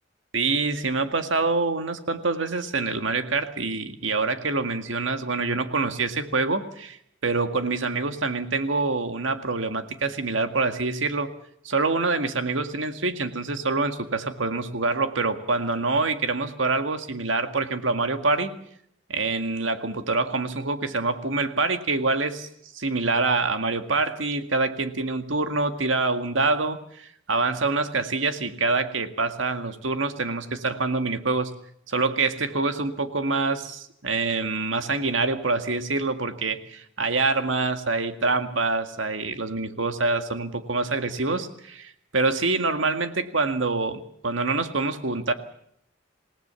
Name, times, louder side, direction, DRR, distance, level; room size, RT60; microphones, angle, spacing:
voice 1, 0.3-7.0 7.2-11.3 11.6-18.5 19.1-22.5 22.7-31.5 31.9-45.3, right 3 dB, 80° right, 8 dB, 2.0 m, -26 dB
27.5 x 17.5 x 7.0 m, 0.71 s
head